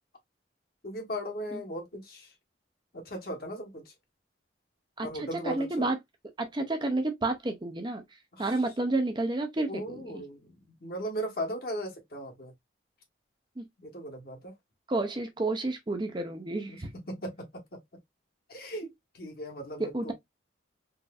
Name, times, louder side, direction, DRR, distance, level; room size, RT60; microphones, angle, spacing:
voice 1, 0.8-2.3 2.9-3.9 5.0-5.8 8.3-8.5 9.7-10.5 10.8-12.5 13.8-14.5 16.6-17.8 18.5-20.1, equal, 50° left, 1.2 m, -38 dB
voice 2, 5.0-6.0 6.4-8.1 8.4-10.2 13.6-13.7 14.9-16.9 19.8-20.1, right 2 dB, 25° right, 0.5 m, -30 dB
4.0 x 2.5 x 2.3 m
head